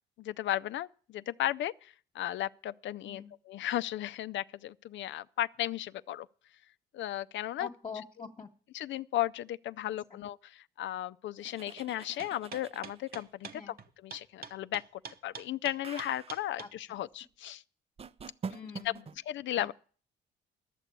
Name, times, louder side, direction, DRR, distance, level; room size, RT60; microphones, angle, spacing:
voice 1, 0.2-6.3 6.9-7.7 8.7-13.7 14.0-17.6 18.8-18.9 19.3-19.7, left 13 dB, 70° left, 0.5 m, -35 dB
voice 2, 7.6-8.5 9.8-10.2 13.5-13.7 16.6-17.0 18.5-19.2 19.5-19.7, left 5 dB, 30° left, 1.2 m, -45 dB
sound 1, 11.4-13.3 15.8-16.5 18.0-19.2, right 5 dB, 30° right, 0.5 m, -45 dB
sound 2, 12.2-16.7, right 5 dB, 50° right, 1.0 m, -44 dB
12.5 x 6.8 x 8.5 m
cardioid pair, 90°, 20 cm